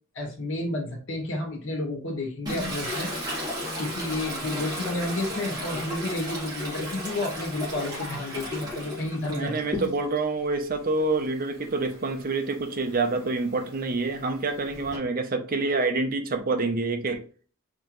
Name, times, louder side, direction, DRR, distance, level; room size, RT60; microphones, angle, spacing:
voice 1, 0.2-3.1 3.8-9.6, left 2 dB, 65° left, 1.8 m, -31 dB
Toilet flush, 2.5-10.3 10.7-15.0, equal, 20° right, 2.2 m, -35 dB
voice 2, 9.3-17.2, right 3 dB, 45° right, 0.7 m, -27 dB
4.8 x 3.6 x 3.1 m
head